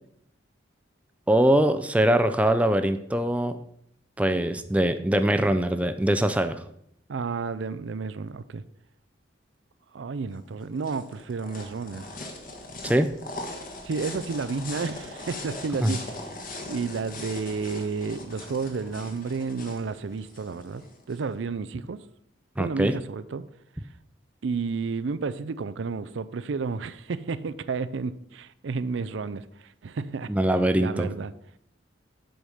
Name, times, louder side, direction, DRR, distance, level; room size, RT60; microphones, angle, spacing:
voice 1, 1.3-3.6 4.2-6.6 12.8-13.1 15.8-15.9 22.6-23.0 30.3-31.1, right 1 dB, 5° right, 0.4 m, -22 dB
voice 2, 7.1-8.6 9.9-12.1 13.8-16.3 16.7-22.0 22.6-23.4 24.4-30.3 30.8-31.3, right 4 dB, 75° right, 0.4 m, -31 dB
sound 1, 10.3-21.2, left 2 dB, 45° left, 1.4 m, -40 dB
7.8 x 5.0 x 5.6 m
head